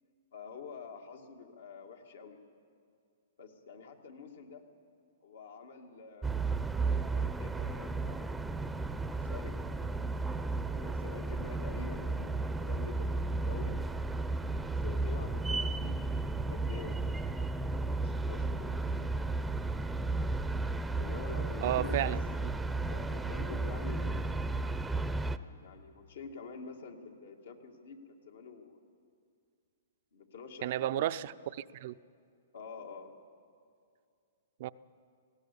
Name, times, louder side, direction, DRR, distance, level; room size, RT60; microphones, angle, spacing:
voice 1, 0.3-2.4 3.4-4.7 5.2-9.9 10.7-13.8 14.6-17.0 17.3-17.5 17.7-18.8 21.0-22.5 22.9-24.5 25.6-28.8 30.1-31.5 32.5-33.1, left 5 dB, 75° left, 2.2 m, -48 dB
sound 1, 6.2-25.4, right 3 dB, 5° right, 0.6 m, -33 dB
voice 2, 21.6-22.2 30.6-31.9 34.6-34.7, right 13 dB, 55° right, 0.5 m, -32 dB
19.0 x 16.5 x 8.4 m
hypercardioid pair, 135°, 0 cm